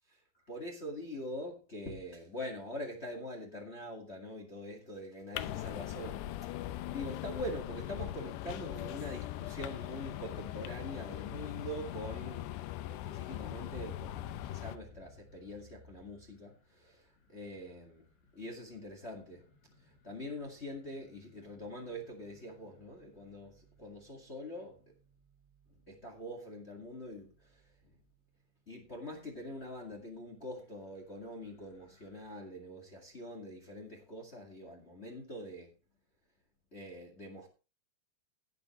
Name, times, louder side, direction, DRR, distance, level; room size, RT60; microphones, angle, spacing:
voice 1, 0.5-6.2 6.6-12.5 12.9-18.0 18.3-19.4 19.8-24.8 25.9-27.6 28.7-35.7 36.7-37.5, left 1 dB, 30° left, 1.1 m, -44 dB
sound 1, 5.3-14.8, left 14 dB, 90° left, 3.0 m, -40 dB
sound 2, 13.3-30.3 30.8-32.3, left 1 dB, 65° left, 3.6 m, -60 dB
17.5 x 8.1 x 3.2 m
omnidirectional pair, 4.8 m